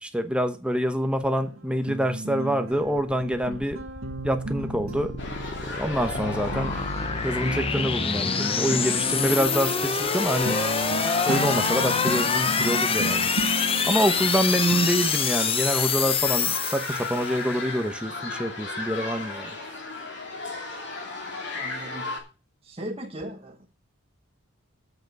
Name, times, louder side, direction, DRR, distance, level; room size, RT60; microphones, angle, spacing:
voice 1, 0.0-3.8 4.2-5.1 5.8-6.7 7.2-10.6 11.2-13.3 13.9-19.5, equal, 5° right, 1.0 m, -26 dB
sound 1, 1.4-5.9 6.1-15.0, right 2 dB, 75° right, 1.9 m, -35 dB
sound 2, 3.3-17.5, left 5 dB, 30° left, 0.7 m, -26 dB
sound 3, 5.2-22.2, left 3 dB, 60° left, 2.8 m, -36 dB
voice 2, 21.5-22.2 22.6-23.7, equal, 30° right, 1.2 m, -38 dB
7.7 x 6.8 x 7.7 m
head